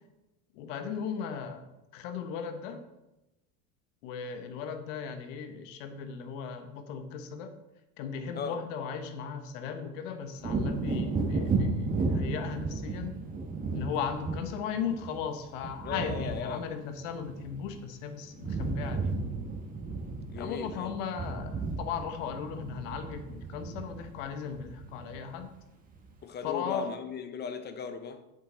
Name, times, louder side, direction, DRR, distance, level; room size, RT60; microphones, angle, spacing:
voice 1, 0.5-1.6 1.9-2.8 4.0-7.5 8.0-13.2 13.7-19.2 20.4-25.5 26.4-26.9, left 7 dB, 75° left, 1.3 m, -37 dB
Wind / Thunder, 10.4-18.0 18.2-25.5 25.9-26.1, right 3 dB, 20° right, 1.3 m, -34 dB
voice 2, 15.8-16.6 20.3-20.9 26.2-28.2, left 6 dB, 25° left, 0.7 m, -37 dB
8.2 x 7.4 x 4.0 m
supercardioid pair, 130°, 38 cm